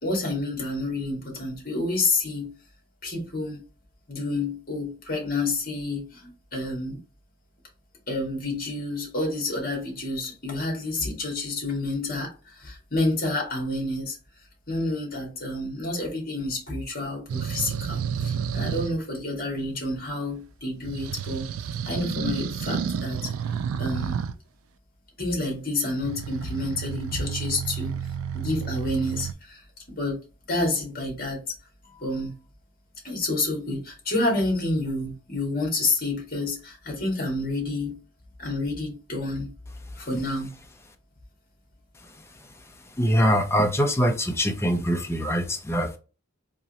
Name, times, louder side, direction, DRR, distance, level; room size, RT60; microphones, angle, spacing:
voice 1, 0.0-2.5 3.0-3.6 4.1-7.0 8.1-14.2 14.7-21.5 21.8-23.3 23.8-24.2 25.2-27.9 28.3-30.2 30.5-31.5 31.8-32.3 33.0-38.0 38.4-39.5 40.0-40.5, left 2 dB, 45° left, 1.7 m, -29 dB
sound 1, 17.3-19.0 20.8-24.4 26.0-29.3, right 7 dB, 85° right, 0.3 m, -30 dB
voice 2, 43.0-46.0, equal, 10° left, 0.5 m, -23 dB
3.6 x 3.0 x 2.8 m
head